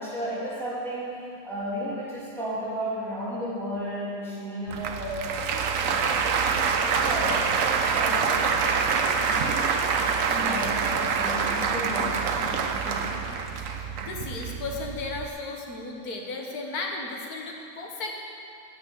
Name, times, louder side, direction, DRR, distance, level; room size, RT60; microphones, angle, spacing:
voice 1, 0.0-5.5 5.8-8.5 8.9-13.2, equal, ahead, -9 dB, 2.6 m, -34 dB
Applause, 4.7-15.3, right 5 dB, 65° right, 1.0 m, -26 dB
voice 2, 13.8-18.1, left 3 dB, 85° left, 1 dB, 1.7 m, -35 dB
8.8 x 7.2 x 7.8 m, 2.5 s
omnidirectional pair, 1.6 m